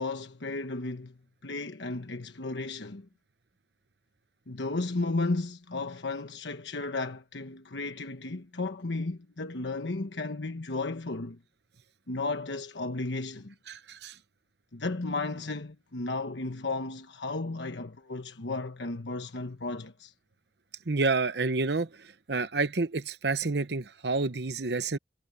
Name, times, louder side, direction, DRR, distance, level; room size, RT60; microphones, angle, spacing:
voice 1, 0.0-3.1 4.5-11.4 12.1-13.5 14.7-20.1, left 3 dB, 90° left, 1.2 m, -34 dB
voice 2, 13.7-14.1 20.9-21.9 22.3-25.0, right 3 dB, 70° right, 1.0 m, -29 dB
head